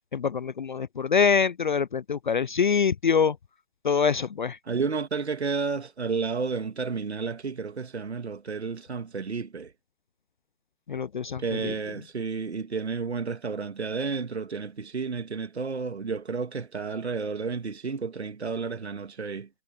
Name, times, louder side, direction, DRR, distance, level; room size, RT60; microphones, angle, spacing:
voice 1, 0.1-3.4 3.8-4.6 10.9-11.7, left 6 dB, 45° left, 0.4 m, -25 dB
voice 2, 4.7-9.7 11.4-19.5, right 5 dB, 75° right, 2.0 m, -31 dB
figure-of-eight pair, 155°, 33 cm